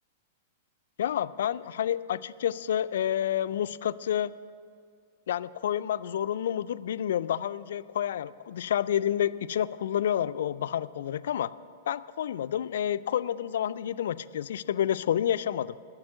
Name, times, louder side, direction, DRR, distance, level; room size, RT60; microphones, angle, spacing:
voice 1, 1.0-4.3 5.3-11.5 11.9-15.8, left 10 dB, 65° left, 14 dB, 0.3 m, -29 dB
13.0 x 7.3 x 9.0 m, 2.3 s
figure-of-eight pair, 105°, 0 cm